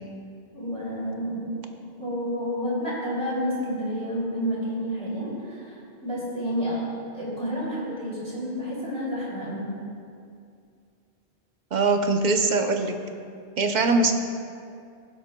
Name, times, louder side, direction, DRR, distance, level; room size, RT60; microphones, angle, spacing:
voice 1, 0.5-1.5 2.0-9.7, equal, 65° right, -10 dB, 3.2 m, -30 dB
voice 2, 11.7-13.0 13.6-14.2, right 3 dB, 45° right, 4 dB, 0.7 m, -22 dB
21.5 x 7.6 x 2.2 m, 2.4 s
omnidirectional pair, 1.2 m